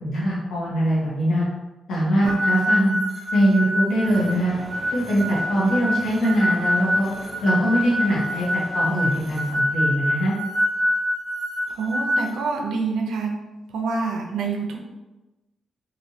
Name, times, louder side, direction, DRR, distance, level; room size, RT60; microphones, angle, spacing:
voice 1, 0.0-1.5 1.9-2.9 3.3-4.5 4.9-7.1 7.4-10.3, equal, 80° left, -6 dB, 1.1 m, -22 dB
sound 1, 2.3-12.3, equal, 25° right, 0.8 m, -25 dB
sound 2, 4.0-9.5, equal, 10° left, 0.6 m, -41 dB
voice 2, 11.7-13.4 13.7-14.8, right 4 dB, 90° right, 2 dB, 0.5 m, -27 dB
3.1 x 2.5 x 2.7 m, 1.1 s
cardioid pair, 95°, 0 cm